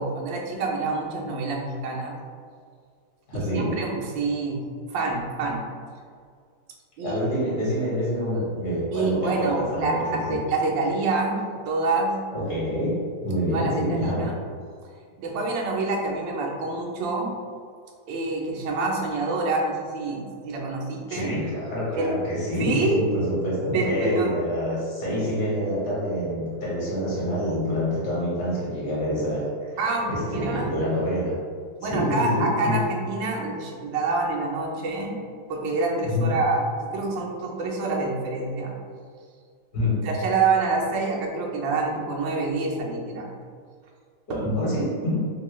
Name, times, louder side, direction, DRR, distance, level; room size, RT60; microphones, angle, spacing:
voice 1, 0.0-2.2 3.3-4.6 4.9-5.6 7.0-7.5 8.9-9.9 10.3-12.2 13.5-14.3 15.2-17.3 18.1-21.3 22.0-22.1 22.6-23.0 23.7-24.3 29.8-30.7 31.8-35.2 35.5-38.7 40.0-43.3 44.3-44.4, right 3 dB, 90° right, -1 dB, 1.3 m, -27 dB
voice 2, 3.3-3.8 7.0-10.4 12.3-14.3 21.1-29.5 30.1-31.4 31.8-32.8 36.0-36.4 39.7-40.1 44.3-45.2, equal, 65° left, -7 dB, 1.5 m, -26 dB
3.7 x 2.2 x 3.0 m, 2.1 s
omnidirectional pair, 2.0 m